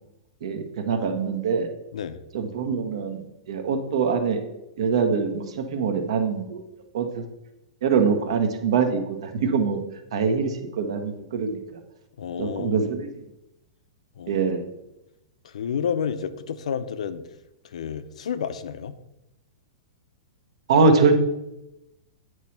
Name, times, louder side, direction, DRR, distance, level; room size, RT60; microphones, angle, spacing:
voice 1, 0.4-1.7 2.3-4.4 4.8-6.6 6.9-7.3 7.8-9.8 10.1-11.6 12.4-13.1 14.3-14.6 20.7-21.2, right 5 dB, 60° right, 6 dB, 1.1 m, -23 dB
voice 2, 1.9-2.2 12.2-12.9 14.2-14.6 15.4-17.2 17.6-19.0, left 7 dB, 85° left, 11 dB, 0.6 m, -30 dB
9.1 x 3.2 x 5.8 m, 0.91 s
supercardioid pair, 175°, 3 cm